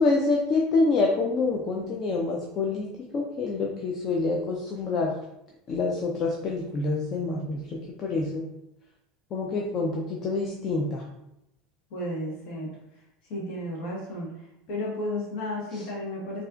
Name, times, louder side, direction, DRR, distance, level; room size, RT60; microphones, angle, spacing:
voice 1, 0.0-2.9 3.1-5.1 5.7-8.4 9.3-11.0, left 3 dB, 40° left, 0 dB, 0.5 m, -26 dB
voice 2, 11.9-12.7 13.3-14.3 14.7-16.4, left 1 dB, 60° left, -4 dB, 1.1 m, -33 dB
4.0 x 2.4 x 2.4 m, 0.83 s
supercardioid pair, 110°, 0 cm